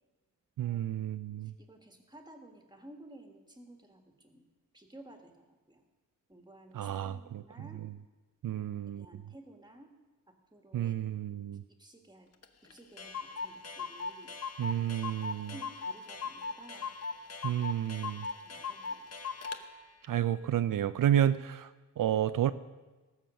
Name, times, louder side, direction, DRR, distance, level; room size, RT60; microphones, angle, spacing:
voice 1, 0.6-1.5 6.7-7.4 8.4-9.2 10.7-11.6 14.6-15.5 17.4-18.3 20.1-22.5, right 10 dB, 75° right, 12 dB, 0.5 m, -31 dB
voice 2, 1.4-4.5 4.7-5.8 6.3-7.8 8.5-8.7 9.0-9.9 10.5-11.1 11.8-12.3 12.6-14.4 15.5-16.9 17.4-17.5 18.4-19.1, right 1 dB, 15° right, 4 dB, 1.6 m, -54 dB
Clock, 12.4-12.5 12.7-12.8 13.0-19.6, left 5 dB, 50° left, 0.9 m, -39 dB
18.5 x 7.4 x 6.4 m, 1.2 s
wide cardioid pair, 145°, 33 cm